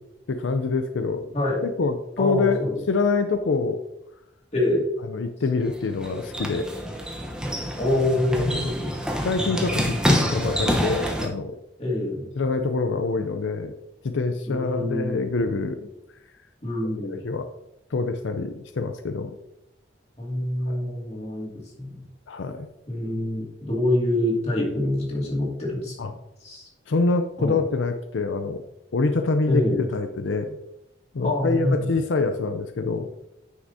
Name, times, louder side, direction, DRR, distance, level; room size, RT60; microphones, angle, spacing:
voice 1, 0.3-1.3 1.6-3.8 5.1-6.7 8.3-8.7 9.2-11.5 12.4-13.7 14.0-15.9 17.0-17.5 17.9-19.4 20.7-20.8 22.3-22.7 26.0-26.1 26.9-28.6 28.9-30.6 31.1-33.3, left 3 dB, 90° left, 8 dB, 0.5 m, -26 dB
voice 2, 2.2-2.7 4.5-4.8 7.8-9.7 10.2-10.3 11.8-12.2 14.5-15.2 16.6-17.2 20.2-21.5 21.8-22.0 22.9-26.1 26.4-26.7 27.4-27.6 29.5-29.8 31.2-32.0, left 1 dB, 35° left, -3 dB, 2.3 m, -26 dB
sound 1, 5.6-11.3, equal, 5° right, 0.9 m, -27 dB
9.6 x 6.1 x 2.7 m, 0.89 s
head